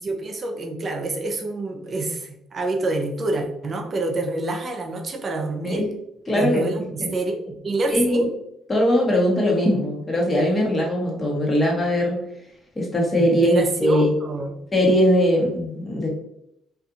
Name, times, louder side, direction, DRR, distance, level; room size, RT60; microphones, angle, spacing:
voice 1, 0.0-5.8 6.3-8.3 13.2-14.5, right 2 dB, 45° right, 3 dB, 0.5 m, -27 dB
voice 2, 6.3-7.1 7.9-8.3 8.7-12.2 12.8-14.1 14.7-16.1, equal, 30° left, -2 dB, 1.1 m, -20 dB
2.6 x 2.5 x 2.4 m, 0.77 s
supercardioid pair, 60°, 0 cm